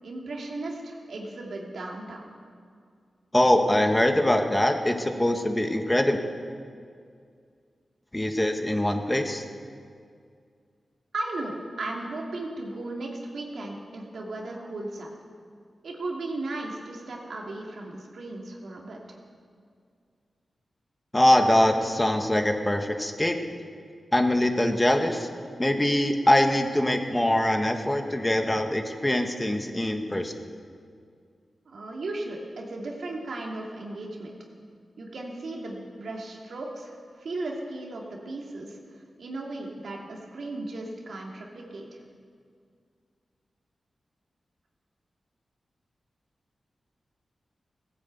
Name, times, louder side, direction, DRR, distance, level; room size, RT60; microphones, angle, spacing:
voice 1, 0.0-2.3 11.1-15.1 15.8-19.2 31.7-34.3 35.0-38.8 39.2-42.0, right 2 dB, 75° right, -1 dB, 2.7 m, -36 dB
voice 2, 3.3-6.2 8.1-9.4 21.1-23.5 24.1-25.3 25.6-30.3, left 1 dB, 15° left, 5 dB, 1.6 m, -23 dB
16.5 x 9.9 x 8.2 m, 2.2 s
cardioid pair, 50°, 0 cm